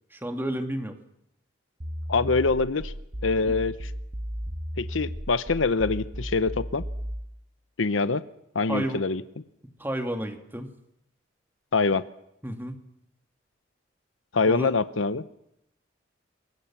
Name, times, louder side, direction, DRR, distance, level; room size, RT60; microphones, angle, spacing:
voice 1, 0.1-1.0 3.5-3.6 8.7-9.0 9.8-10.7 12.4-12.8 14.4-14.7, right 1 dB, 10° right, 6 dB, 2.3 m, -31 dB
sound 1, 1.8-7.3, equal, 40° right, 1.5 m, -35 dB
voice 2, 2.1-2.9 3.2-3.9 4.8-6.8 7.8-8.2 8.5-9.2 11.7-12.0 14.3-15.2, left 4 dB, 90° left, 13 dB, 0.9 m, -24 dB
27.5 x 23.0 x 7.4 m, 0.78 s
head